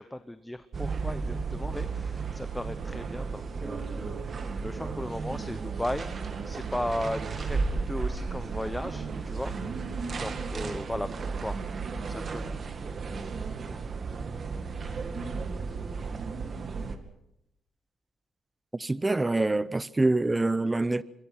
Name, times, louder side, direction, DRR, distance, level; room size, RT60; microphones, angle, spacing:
voice 1, 0.0-4.2 4.6-6.1 6.4-9.5 10.2-11.6 12.0-12.5 15.7-15.8, left 1 dB, 5° left, 0.9 m, -36 dB
sound 1, 0.7-17.0, right 4 dB, 45° right, 2.2 m, -34 dB
voice 2, 18.7-21.0, right 2 dB, 15° right, 0.8 m, -25 dB
25.5 x 21.5 x 5.9 m
cardioid pair, 90°, 0 cm